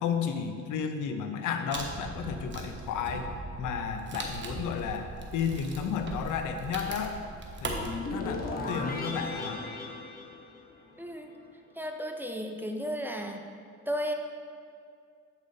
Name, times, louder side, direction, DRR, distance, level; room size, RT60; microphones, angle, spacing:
voice 1, 0.0-3.3 3.6-7.2 7.6-9.6, left 6 dB, 85° left, 6 dB, 0.7 m, -33 dB
Wood, 1.7-7.9, right 3 dB, 40° right, 1.1 m, -39 dB
sound 1, 7.9-11.1, left 2 dB, 30° left, 1.1 m, -36 dB
voice 2, 11.0-11.3 11.8-13.4 13.9-14.1, equal, 5° right, 3 dB, 0.6 m, -34 dB
8.2 x 5.4 x 3.9 m, 2.3 s
cardioid pair, 90°, 30 cm